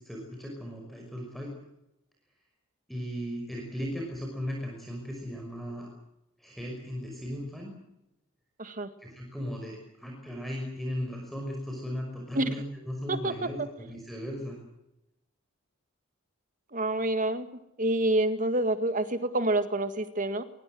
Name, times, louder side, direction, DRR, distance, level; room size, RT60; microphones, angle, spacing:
voice 1, 0.0-1.5 2.9-5.9 6.4-7.7 9.0-14.6, equal, ahead, 0 dB, 5.7 m, -37 dB
voice 2, 13.1-13.5 16.7-17.5 17.8-20.4, right 1 dB, 35° right, 10 dB, 2.0 m, -27 dB
24.0 x 22.5 x 7.9 m, 0.88 s
head